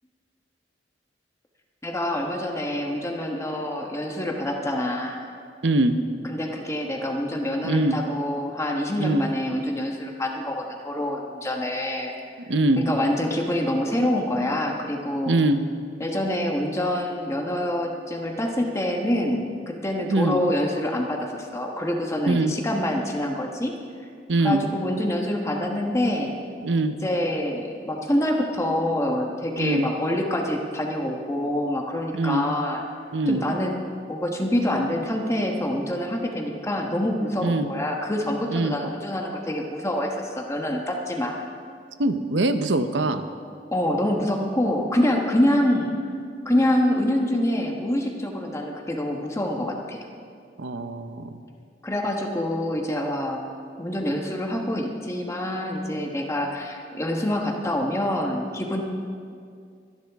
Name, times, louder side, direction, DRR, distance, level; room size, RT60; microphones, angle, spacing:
voice 1, 1.8-5.3 6.2-12.1 12.8-15.4 16.0-23.7 24.4-26.3 27.0-32.8 33.3-33.8 34.1-41.5 43.7-45.9 46.4-50.0 51.8-53.4 53.8-58.8, left 1 dB, 15° left, 1 dB, 1.2 m, -26 dB
voice 2, 5.6-6.0 7.6-8.0 9.0-9.2 12.5-12.8 15.3-15.6 20.1-20.4 22.3-22.5 24.3-24.6 26.6-27.0 29.6-29.9 32.1-32.4 33.1-33.4 37.4-37.7 38.5-38.8 42.0-43.2 50.6-51.4, right 2 dB, 90° right, 9 dB, 0.8 m, -22 dB
24.5 x 10.5 x 3.6 m, 2.3 s
head